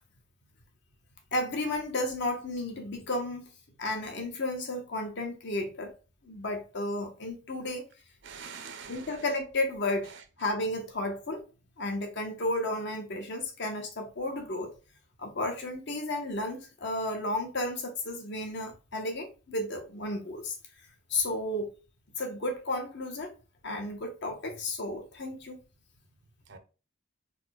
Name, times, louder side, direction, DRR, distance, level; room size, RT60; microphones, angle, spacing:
voice 1, 1.3-3.5 3.8-5.9 6.2-7.8 8.9-11.4 11.8-14.7 15.2-20.6 21.1-21.7 22.2-23.3 23.6-25.6, left 2 dB, 55° left, 0.9 m, -33 dB
voice 2, 8.2-9.2 10.1-10.2 26.5-26.6, right 6 dB, 55° right, 0.7 m, -44 dB
4.2 x 2.2 x 4.1 m
head